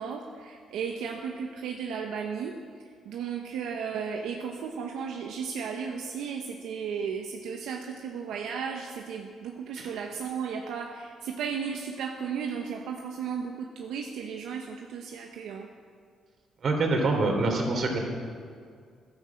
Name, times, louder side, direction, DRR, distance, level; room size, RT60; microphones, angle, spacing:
voice 1, 0.0-15.7, right 6 dB, 85° right, 2 dB, 1.1 m, -35 dB
voice 2, 16.6-18.0, right 2 dB, 55° right, 3 dB, 3.4 m, -25 dB
14.5 x 11.5 x 7.6 m, 2.2 s
cardioid pair, 90°, 0 cm